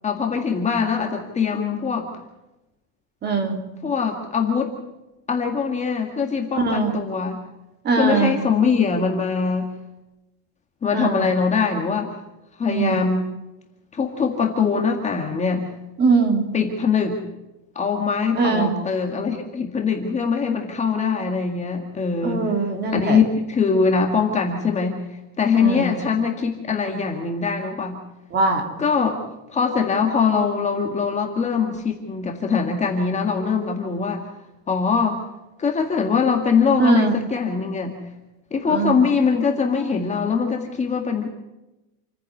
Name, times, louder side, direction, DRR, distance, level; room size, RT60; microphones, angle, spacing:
voice 1, 0.0-2.1 3.8-4.7 5.3-7.4 8.0-9.7 10.8-12.1 12.6-13.3 13.9-15.7 16.5-17.2 17.8-22.4 22.9-25.0 25.4-28.0 28.8-29.2 29.5-34.2 34.7-35.2 35.6-37.9 38.5-41.3, left 5 dB, 15° left, 2 dB, 1.9 m, -22 dB
voice 2, 3.2-3.6 6.5-7.0 7.8-8.4 10.9-11.3 12.7-13.0 16.0-16.5 18.3-18.7 22.2-23.2 25.6-25.9 28.3-28.7 36.8-37.1 38.6-39.0, right 4 dB, 25° right, 4 dB, 3.2 m, -21 dB
28.5 x 10.0 x 9.6 m, 0.98 s
cardioid pair, 175°, 39 cm